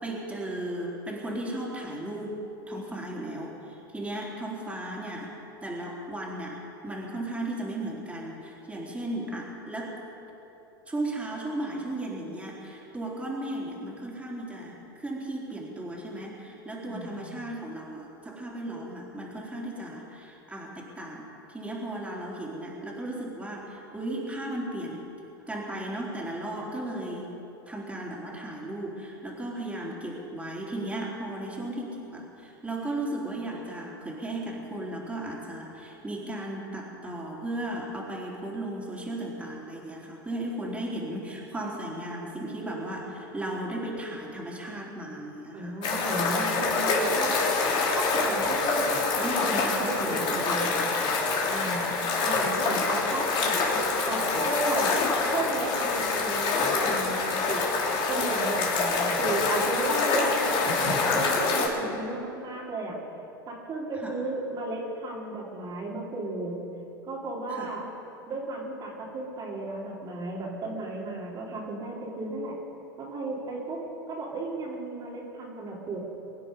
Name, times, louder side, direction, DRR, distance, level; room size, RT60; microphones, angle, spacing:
voice 1, 0.0-2.4 2.7-5.3 5.6-10.0 10.9-25.0 25.5-27.3 27.7-45.7 49.2-51.2 54.1-54.3 64.0-64.1 67.5-67.7, right 1 dB, 10° right, -4 dB, 3.8 m, -35 dB
voice 2, 16.8-17.2 45.5-47.4 48.0-48.9 49.4-50.7 51.4-51.9 52.2-53.6 54.1-55.0 55.3-57.6 58.1-63.0 63.5-66.6 67.0-67.9 68.3-72.5 73.0-73.8 74.1-76.0, right 2 dB, 35° right, -4 dB, 3.4 m, -34 dB
sound 1, 45.8-61.7, left 4 dB, 45° left, 3.6 m, -26 dB
23.5 x 9.8 x 5.4 m, 3.0 s
hypercardioid pair, 95°, 12 cm